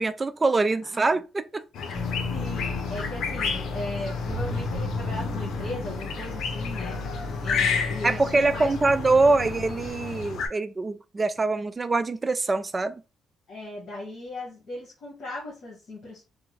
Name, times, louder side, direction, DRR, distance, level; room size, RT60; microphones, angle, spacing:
voice 1, 0.0-1.6 8.0-13.0, right 3 dB, 25° right, 0.4 m, -24 dB
sound 1, 1.7-10.5, left 5 dB, 75° left, 0.7 m, -32 dB
sound 2, 1.9-9.9, left 3 dB, 35° left, 1.9 m, -33 dB
voice 2, 2.0-7.0 7.4-9.3 13.5-16.2, left 2 dB, 60° left, 1.5 m, -38 dB
3.4 x 2.2 x 3.2 m
cardioid pair, 90°, 0 cm